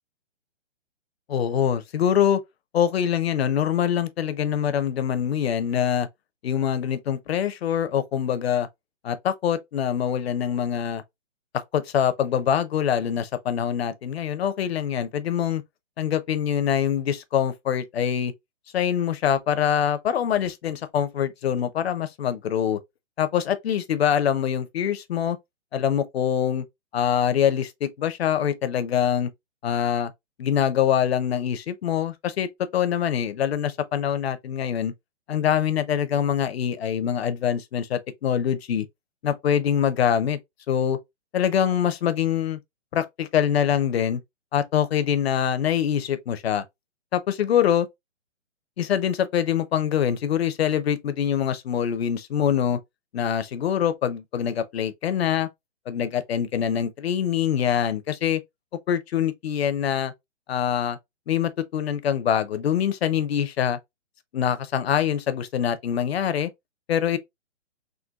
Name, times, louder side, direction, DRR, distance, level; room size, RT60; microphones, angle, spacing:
voice 1, 1.3-2.4 2.7-6.1 6.4-8.7 9.0-11.0 11.5-15.6 16.0-18.3 18.7-22.8 23.2-25.4 25.7-26.6 26.9-29.3 29.6-30.1 30.4-34.9 35.3-38.9 39.2-40.4 40.7-41.0 41.3-42.6 42.9-44.2 44.5-46.6 47.1-47.9 48.8-52.8 53.1-55.5 55.9-58.4 58.9-60.1 60.5-61.0 61.3-63.8 64.3-66.5 66.9-67.2, left 9 dB, 60° left, 0.6 m, -24 dB
3.7 x 2.2 x 2.3 m
hypercardioid pair, 155°, 35 cm